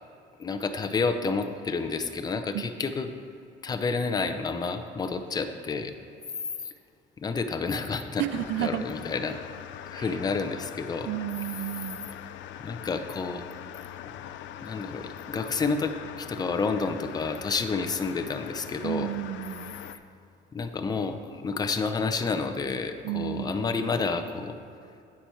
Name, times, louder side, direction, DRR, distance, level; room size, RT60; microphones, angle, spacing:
voice 1, 0.4-3.1 3.6-5.9 6.6-6.7 7.2-9.4 9.9-11.1 12.6-13.4 13.7-13.8 14.6-15.9 16.2-19.1 20.5-24.5, left 4 dB, 20° left, 7 dB, 0.6 m, -30 dB
voice 2, 8.2-8.8 10.0-10.1 11.1-12.1 18.8-19.8 23.0-23.7, right 13 dB, 75° right, 14 dB, 0.5 m, -32 dB
sound 1, 8.3-19.9, left 11 dB, 75° left, 0.5 m, -42 dB
10.0 x 8.5 x 4.5 m, 2.6 s
cardioid pair, 150°, 19 cm